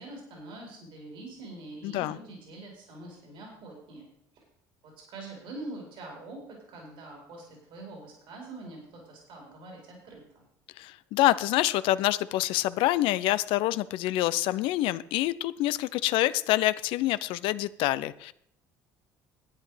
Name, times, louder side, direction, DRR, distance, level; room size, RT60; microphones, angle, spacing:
voice 1, 0.0-4.1 4.8-10.4, right 2 dB, 65° right, -1 dB, 4.4 m, -44 dB
voice 2, 1.8-2.2 10.8-18.3, left 15 dB, 70° left, 16 dB, 0.5 m, -26 dB
11.5 x 9.2 x 4.9 m, 0.73 s
hypercardioid pair, 70°, 9 cm